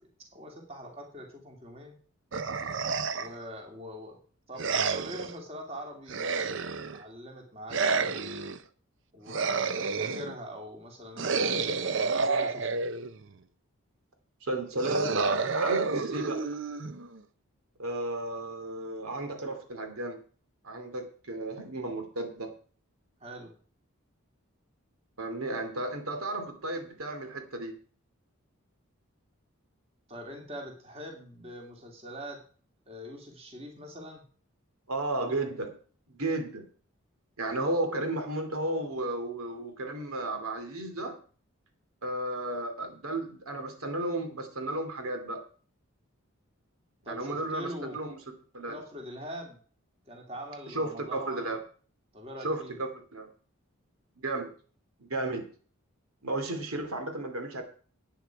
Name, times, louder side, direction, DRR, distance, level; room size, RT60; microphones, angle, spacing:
voice 1, 0.3-2.0 3.2-4.2 4.5-6.5 6.9-8.5 9.1-12.8 23.2-23.6 30.1-32.4 32.9-34.2 47.0-48.0 48.7-49.6 50.1-51.6 52.1-52.8, equal, 30° right, 1 dB, 2.6 m, -43 dB
sound 1, 2.3-3.4 4.6-5.3 6.1-7.0 7.7-8.6 9.3-10.4 11.2-13.2 14.8-17.2, right 4 dB, 60° right, 0.7 m, -30 dB
voice 2, 14.4-16.5 17.8-20.2 20.6-22.5 25.2-27.7 34.9-35.7 36.1-36.6 37.4-41.2 42.0-45.4 47.1-48.2 48.5-48.8 50.7-51.6 52.4-53.3 54.2-54.5 55.0-55.4 56.2-57.6, right 2 dB, 85° right, 5 dB, 2.5 m, -33 dB
12.0 x 9.4 x 4.6 m, 0.42 s
head